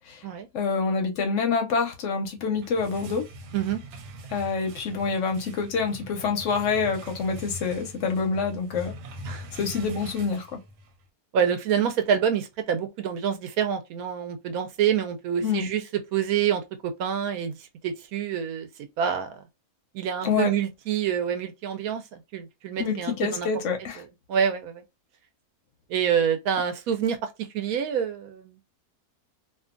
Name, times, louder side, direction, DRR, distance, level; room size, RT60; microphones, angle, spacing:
voice 1, 0.5-3.3 4.3-8.9 9.6-10.6 15.4-15.7 20.2-20.5 22.8-24.0, left 5 dB, 60° left, 0.8 m, -27 dB
sound 1, 2.4-11.0, equal, 90° right, 1.2 m, -42 dB
voice 2, 11.3-15.8 16.1-16.6 17.0-17.6 17.8-18.7 19.0-19.3 19.9-23.5 24.3-24.8 25.9-27.2 27.5-28.6, right 8 dB, 70° right, 0.9 m, -26 dB
2.7 x 2.3 x 2.4 m
omnidirectional pair, 1.7 m